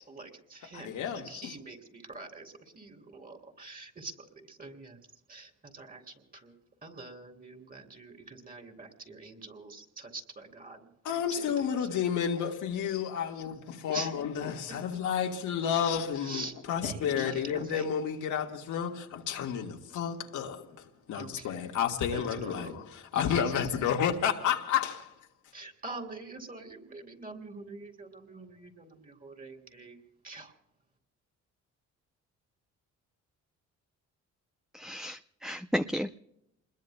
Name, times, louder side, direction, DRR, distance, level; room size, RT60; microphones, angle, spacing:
voice 1, 0.1-4.1 4.5-5.0 5.3-6.0 6.4-6.5 6.8-10.9 11.4-12.0 13.9-14.1 14.7-14.8 16.2-16.5 16.8-17.9 21.1-21.5 22.1-22.7 23.1-23.2 25.5-30.0 30.2-30.5, right 3 dB, 30° right, 3.5 m, -45 dB
voice 2, 0.7-1.6 11.0-25.1, left 8 dB, 75° left, 1.8 m, -31 dB
voice 3, 34.7-36.1, equal, ahead, 0.6 m, -33 dB
29.0 x 21.5 x 2.2 m
cardioid pair, 90°, 30 cm